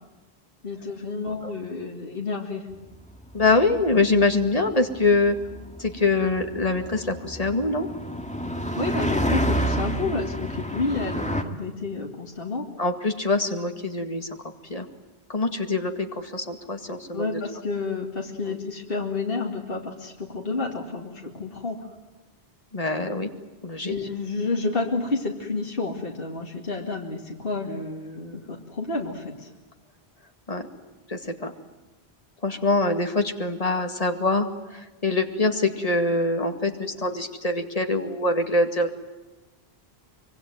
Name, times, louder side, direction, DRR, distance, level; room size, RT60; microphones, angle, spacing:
voice 1, 0.6-2.7 8.8-12.6 17.1-21.9 23.8-29.5, left 3 dB, 60° left, 1 dB, 2.5 m, -30 dB
sound 1, 2.9-11.4, equal, 5° left, 1.9 m, -29 dB
voice 2, 3.3-5.4 5.8-7.9 10.1-10.3 12.8-14.4 14.7-14.9 15.3-17.4 18.5-18.6 22.7-23.3 23.6-24.0 30.5-30.7 31.1-31.5 32.4-38.9, left 2 dB, 35° left, 5 dB, 2.2 m, -24 dB
25.0 x 23.5 x 9.4 m, 1.1 s
omnidirectional pair, 1.1 m